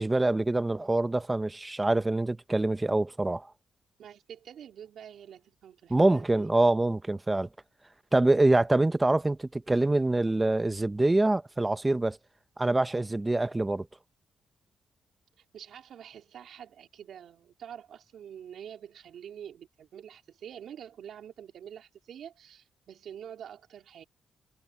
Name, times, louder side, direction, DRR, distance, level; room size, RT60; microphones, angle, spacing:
voice 1, 0.0-3.5 5.9-7.5 8.1-12.2 12.6-13.9, right 2 dB, 15° right, 0.9 m, -25 dB
voice 2, 4.0-6.5 15.4-24.0, right 9 dB, 75° right, 3.7 m, -46 dB
cardioid pair, 95°, 0 cm